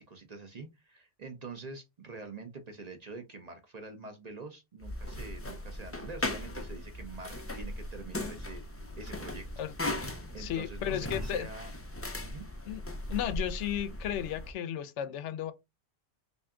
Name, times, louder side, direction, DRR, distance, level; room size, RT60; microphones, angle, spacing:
voice 1, 0.0-9.5 10.3-11.7 12.2-12.5, right 3 dB, 45° right, 0.7 m, -46 dB
sound 1, 4.8-14.5, left 1 dB, 20° left, 0.3 m, -38 dB
voice 2, 9.6-10.1 10.4-11.5 12.7-12.8 13.1-15.5, left 10 dB, 80° left, 0.9 m, -34 dB
3.4 x 2.7 x 3.6 m
omnidirectional pair, 1.2 m